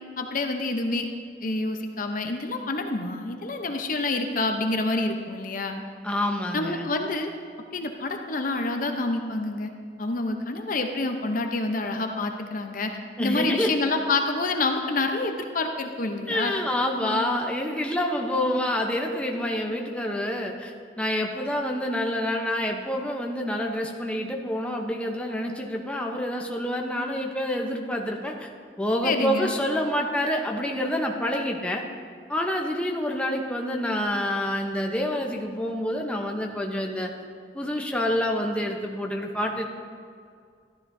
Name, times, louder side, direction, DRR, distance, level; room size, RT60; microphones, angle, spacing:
voice 1, 0.2-1.1 1.4-5.8 6.5-7.3 7.7-9.7 10.0-12.9 13.2-16.5 17.0-17.4 29.0-29.5, left 2 dB, 50° left, 4 dB, 0.7 m, -27 dB
voice 2, 6.0-6.9 13.2-13.7 16.3-28.5 28.8-31.8 32.3-37.1 37.5-39.6, left 1 dB, 5° left, 1 dB, 0.8 m, -27 dB
13.5 x 12.0 x 2.7 m, 2.2 s
head